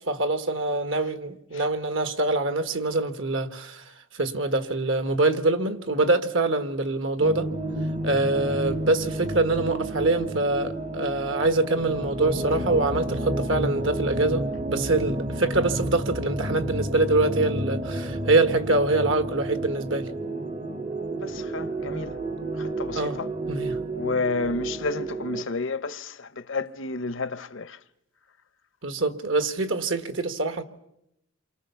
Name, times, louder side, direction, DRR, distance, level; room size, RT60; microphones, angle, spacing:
voice 1, 0.0-7.5 8.0-20.1 22.9-23.2 23.5-23.8 28.8-30.6, right 2 dB, 60° right, 1.6 m, -25 dB
sound 1, 7.2-25.4, right 1 dB, 30° right, 0.9 m, -31 dB
voice 2, 21.2-22.2 22.6-23.3 23.9-27.8, left 3 dB, 60° left, 0.9 m, -31 dB
28.5 x 24.0 x 7.0 m
head